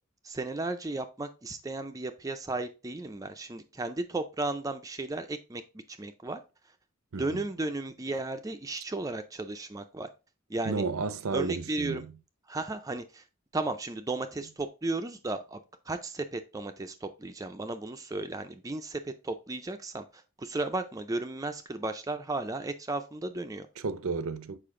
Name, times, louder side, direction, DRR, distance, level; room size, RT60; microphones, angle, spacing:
voice 1, 0.2-5.6 6.0-6.4 7.1-10.1 10.5-10.8 11.3-12.0 12.5-13.2 13.5-15.6 15.9-23.7, right 2 dB, 15° right, 0.4 m, -34 dB
voice 2, 7.1-7.4 10.6-12.1 23.8-24.6, right 4 dB, 85° right, 0.6 m, -32 dB
6.8 x 5.0 x 3.6 m
head